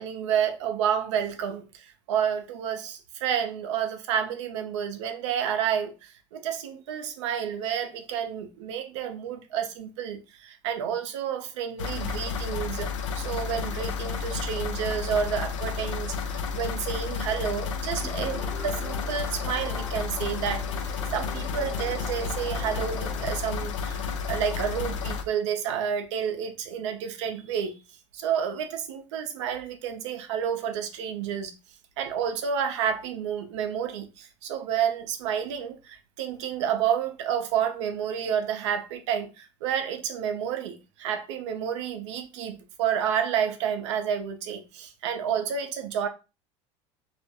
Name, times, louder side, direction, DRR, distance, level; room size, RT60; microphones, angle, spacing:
voice 1, 0.0-12.9 13.1-20.6 21.1-27.8 28.1-31.5 32.0-46.1, right 8 dB, 75° right, 0.6 m, -30 dB
sound 1, 11.8-25.2, left 6 dB, 85° left, 0.5 m, -31 dB
sound 2, 18.0-23.3, left 1 dB, 5° left, 0.5 m, -43 dB
2.4 x 2.1 x 2.9 m
hypercardioid pair, 80°, 15 cm